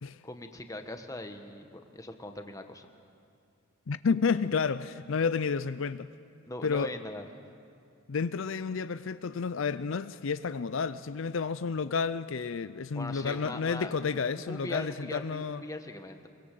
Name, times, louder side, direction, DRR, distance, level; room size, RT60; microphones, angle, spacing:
voice 1, 0.2-2.9 6.5-7.3 12.9-14.0 14.3-16.3, left 2 dB, 15° left, 1.3 m, -40 dB
voice 2, 3.9-6.1 6.6-6.9 8.1-15.6, left 5 dB, 70° left, 0.5 m, -31 dB
23.5 x 22.0 x 7.7 m
head